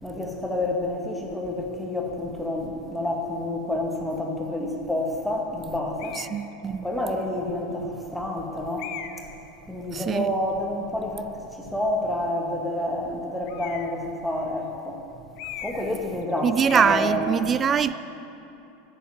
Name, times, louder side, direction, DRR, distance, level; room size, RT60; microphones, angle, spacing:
voice 1, 0.0-6.2 6.6-8.9 9.2-9.3 9.7-15.0 15.6-17.5, left 1 dB, ahead, 2.0 m, -29 dB
sound 1, 6.0-6.4 7.2-7.3 8.8-9.3 13.5-14.0 15.4-16.0 16.2-16.4 16.7-17.1, left 10 dB, 50° left, 0.7 m, -38 dB
voice 2, 6.1-6.9 9.9-10.3 16.4-17.9, right 7 dB, 30° right, 0.4 m, -23 dB
10.0 x 7.2 x 9.2 m
figure-of-eight pair, 80°, 0 cm